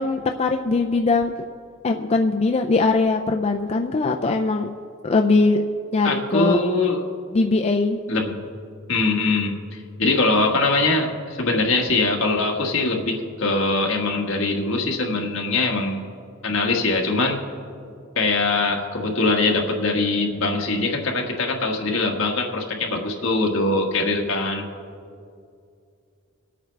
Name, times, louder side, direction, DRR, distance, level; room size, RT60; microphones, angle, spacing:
voice 1, 0.0-1.3 1.8-4.7 5.0-5.6 5.9-6.6 7.3-8.0, left 3 dB, 30° left, 4 dB, 0.4 m, -21 dB
voice 2, 6.0-7.1 8.1-8.4 8.9-16.0 16.4-17.4 18.1-24.7, left 3 dB, 70° left, 0 dB, 1.6 m, -22 dB
23.0 x 8.7 x 3.4 m, 2.4 s
head